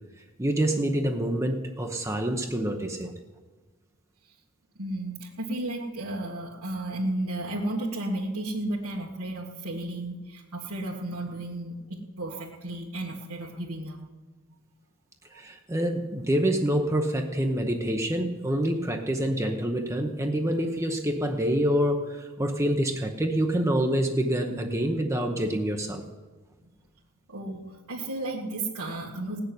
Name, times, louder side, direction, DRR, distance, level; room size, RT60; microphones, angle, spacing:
voice 1, 0.4-3.1 15.3-26.0, right 1 dB, 15° right, 3 dB, 0.8 m, -26 dB
voice 2, 4.8-14.1 15.3-15.4 27.3-29.4, right 1 dB, 90° right, -4 dB, 1.7 m, -33 dB
17.0 x 6.8 x 9.7 m, 1.3 s
head